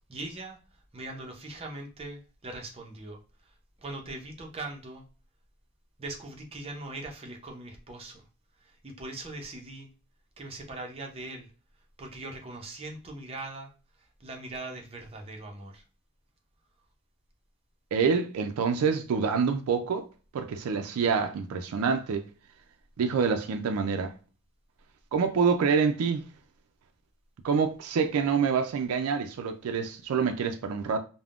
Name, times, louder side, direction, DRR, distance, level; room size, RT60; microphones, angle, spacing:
voice 1, 0.1-0.6 0.9-3.2 3.8-5.0 6.0-8.2 8.6-9.9 10.4-11.5 12.0-13.7 14.2-15.8, right 2 dB, 25° right, 0.6 m, -40 dB
voice 2, 17.9-20.1 20.3-22.2 23.0-24.1 25.1-26.2 27.4-31.0, right 5 dB, 85° right, 0.4 m, -26 dB
3.4 x 2.1 x 2.4 m
head